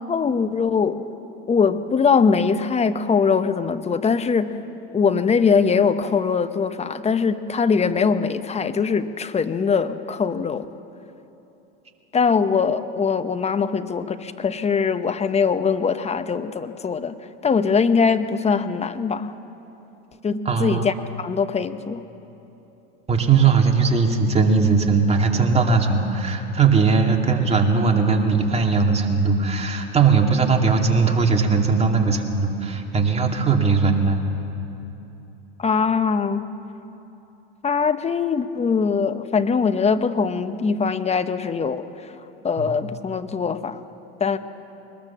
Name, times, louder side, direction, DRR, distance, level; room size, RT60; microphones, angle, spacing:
voice 1, 0.1-1.0 1.5-4.6 4.9-10.7 12.1-17.2 17.4-19.3 20.2-22.1 35.6-36.5 37.6-41.9 42.4-43.8 44.2-44.4, left 5 dB, 20° left, 11 dB, 0.9 m, -22 dB
voice 2, 20.4-20.8 23.1-34.2 42.6-42.7, right 5 dB, 20° right, 2 dB, 2.4 m, -19 dB
21.5 x 19.5 x 7.4 m, 3.0 s
hypercardioid pair, 100°, 32 cm